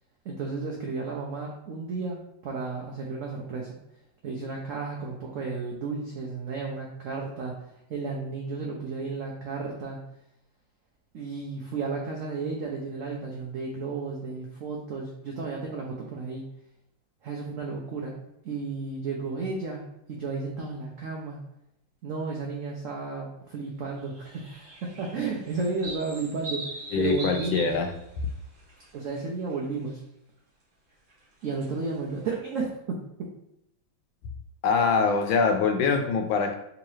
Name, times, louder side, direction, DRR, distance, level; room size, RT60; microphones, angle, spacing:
voice 1, 0.2-3.8 4.2-7.6 7.9-10.1 11.1-16.5 17.2-18.2 18.4-19.8 20.1-21.4 22.0-27.7 28.9-30.0 31.4-33.0, right 4 dB, 85° right, -1 dB, 0.7 m, -33 dB
sound 1, 24.1-29.2 29.5-29.9 31.1-32.3, right 2 dB, 35° right, 0.9 m, -41 dB
voice 2, 26.9-27.9 34.6-36.5, left 5 dB, 85° left, 6 dB, 1.3 m, -24 dB
3.6 x 3.0 x 3.1 m, 0.80 s
omnidirectional pair, 2.1 m